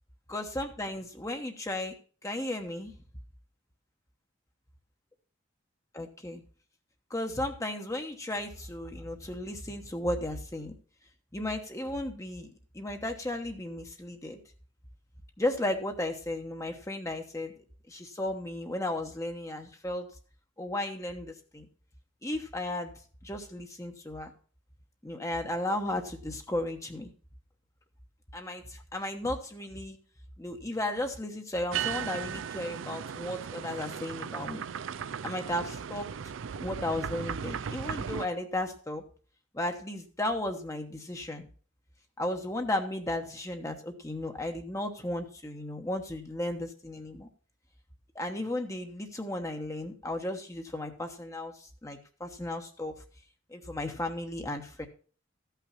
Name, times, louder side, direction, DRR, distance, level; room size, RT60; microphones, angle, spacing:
voice 1, 0.3-2.0 2.2-2.9 5.9-6.4 7.1-10.7 11.3-12.5 12.7-14.4 15.4-17.5 17.9-20.1 20.6-21.7 22.2-22.9 23.2-24.3 25.0-27.1 28.3-30.0 30.4-34.6 35.2-36.1 36.6-39.0 39.5-41.5 42.2-47.3 48.1-52.9 53.5-54.9, left 1 dB, 15° left, 4 dB, 1.0 m, -34 dB
sound 1, 31.7-38.3, right 7 dB, 80° right, 0.4 m, -36 dB
14.0 x 5.8 x 5.7 m, 0.40 s
head